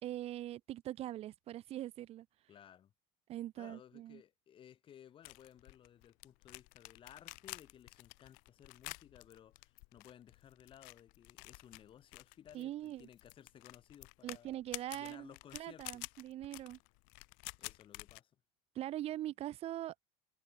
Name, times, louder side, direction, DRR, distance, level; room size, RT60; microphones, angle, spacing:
voice 1, 0.0-2.3 3.3-4.2 12.5-13.1 14.2-16.8 18.7-19.9, right 13 dB, 45° right, 1.1 m, -42 dB
voice 2, 2.5-2.9 3.5-14.5 14.9-16.1 17.6-18.3, left 10 dB, 35° left, 6.0 m, -58 dB
sound 1, 5.2-18.2, left 32 dB, 75° left, 2.2 m, -50 dB
cardioid pair, 135°, 14 cm